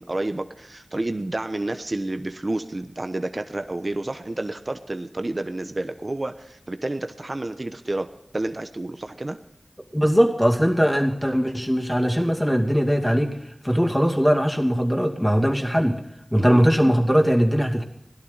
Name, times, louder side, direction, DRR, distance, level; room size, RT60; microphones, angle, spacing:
voice 1, 0.0-9.4 16.4-16.5, right 2 dB, 50° right, 8 dB, 0.9 m, -30 dB
voice 2, 9.9-13.4 13.6-16.0 16.3-17.8, equal, ahead, 2 dB, 2.4 m, -20 dB
18.0 x 11.5 x 4.0 m, 0.79 s
wide cardioid pair, 45°, 0 cm